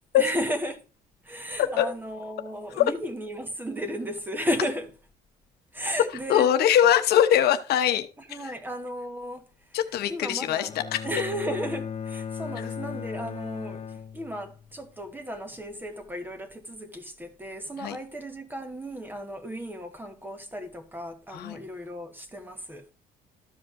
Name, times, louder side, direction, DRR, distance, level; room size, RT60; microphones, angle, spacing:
voice 1, 0.1-0.8 1.2-4.9 5.7-6.5 8.2-9.8 10.1-10.7 11.0-22.9, equal, 10° right, 1.4 m, -34 dB
voice 2, 6.3-8.1 9.7-11.0 17.8-18.0 21.3-21.6, left 10 dB, 70° left, 0.9 m, -22 dB
Bowed string instrument, 10.7-14.8, left 7 dB, 35° left, 0.5 m, -37 dB
14.0 x 5.1 x 2.6 m
cardioid pair, 110°, 17 cm